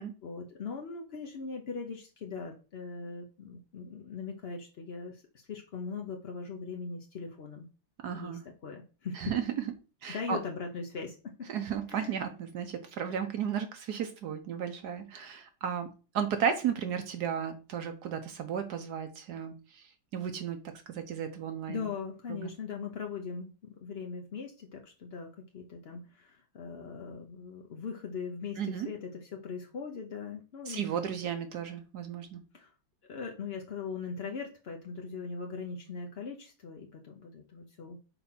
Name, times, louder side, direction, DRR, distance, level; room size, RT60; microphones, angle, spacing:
voice 1, 0.2-7.7 8.1-9.3 10.1-11.5 11.9-12.2 21.7-30.9 32.5-32.7 33.1-38.0, left 5 dB, 60° left, 2 dB, 0.6 m, -40 dB
voice 2, 8.0-8.4 9.1-9.6 10.0-10.4 11.5-20.6 20.9-21.9 22.3-22.5 28.6-28.9 30.7-32.4, right 8 dB, 65° right, 7 dB, 1.1 m, -34 dB
4.3 x 4.2 x 5.6 m, 0.35 s
omnidirectional pair, 2.0 m